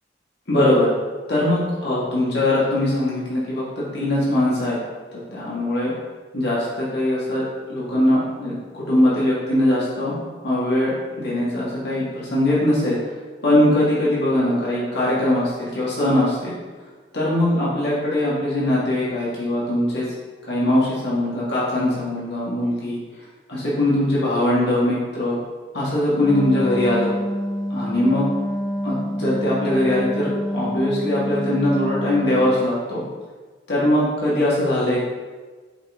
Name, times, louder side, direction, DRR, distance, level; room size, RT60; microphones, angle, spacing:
voice 1, 0.5-0.9 1.3-4.8 5.1-5.9 6.3-10.2 10.4-13.0 13.4-16.6 17.1-20.1 20.5-23.0 23.5-25.4 25.7-27.1 27.7-28.3 28.8-33.0 33.7-35.0, left 1 dB, 65° left, -8 dB, 1.8 m, -21 dB
Wind instrument woodwind instrument, 26.1-32.6, equal, 25° left, 0.5 m, -27 dB
8.0 x 3.9 x 3.7 m, 1.4 s
head